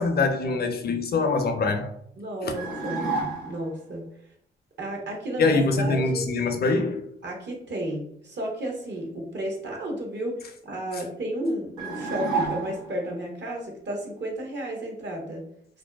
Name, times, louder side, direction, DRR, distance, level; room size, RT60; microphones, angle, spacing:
voice 1, 0.0-1.9 2.4-2.5 5.4-7.1, left 3 dB, 50° left, 0.5 m, -24 dB
voice 2, 2.2-3.1 3.4-4.0 4.8-6.2 7.2-15.4, right 1 dB, 60° right, 0.9 m, -32 dB
sound 1, 2.5-3.7 11.8-13.1, right 3 dB, 90° right, 0.8 m, -30 dB
2.6 x 2.1 x 2.3 m
supercardioid pair, 50°, 21 cm